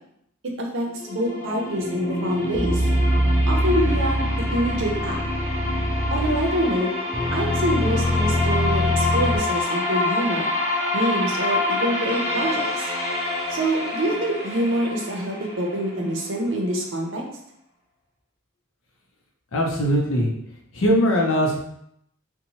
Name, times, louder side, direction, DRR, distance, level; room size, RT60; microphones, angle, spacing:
voice 1, 0.4-2.9 3.4-5.2 6.1-6.9 7.3-10.5 10.9-12.9 13.5-17.2, right 1 dB, 65° right, 0 dB, 0.6 m, -26 dB
sound 1, 0.8-16.7, left 2 dB, 45° left, 1.3 m, -27 dB
sound 2, 2.5-6.7 7.1-9.4, equal, 15° right, 0.4 m, -23 dB
voice 2, 19.5-20.3 20.7-21.6, equal, 75° left, -1 dB, 0.6 m, -20 dB
2.9 x 2.1 x 2.8 m, 0.74 s
head